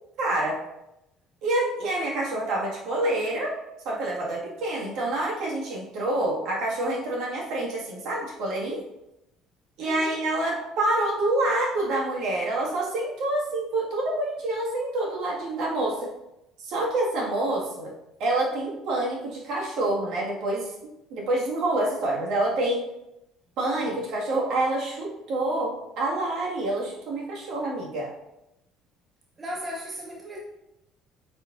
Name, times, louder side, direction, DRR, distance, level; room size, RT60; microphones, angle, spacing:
voice 1, 0.2-0.6 1.4-3.6 3.9-8.8 9.8-16.1 16.6-17.9 18.2-20.7 21.1-22.9 23.6-28.1, right 2 dB, 65° right, -3 dB, 2.1 m, -27 dB
voice 2, 9.8-10.2 29.4-30.4, equal, 30° right, -1 dB, 1.0 m, -36 dB
8.9 x 4.6 x 2.7 m, 0.88 s
hypercardioid pair, 65°, 0 cm